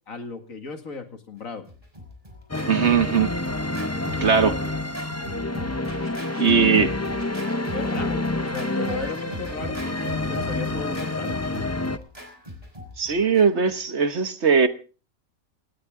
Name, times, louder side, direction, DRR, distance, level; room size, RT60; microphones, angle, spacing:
voice 1, 0.1-1.6 6.3-6.9 7.7-11.4, left 4 dB, 70° left, 6 dB, 2.5 m, -35 dB
Scratching (performance technique), 1.7-13.7, left 1 dB, 25° right, 5.5 m, -38 dB
sound 1, 2.5-12.0, left 2 dB, 15° left, 0.5 m, -28 dB
voice 2, 2.7-3.3 4.2-4.6 6.4-6.9 13.0-14.7, right 6 dB, 55° right, 10 dB, 1.4 m, -19 dB
18.0 x 18.0 x 3.7 m, 0.37 s
omnidirectional pair, 1.5 m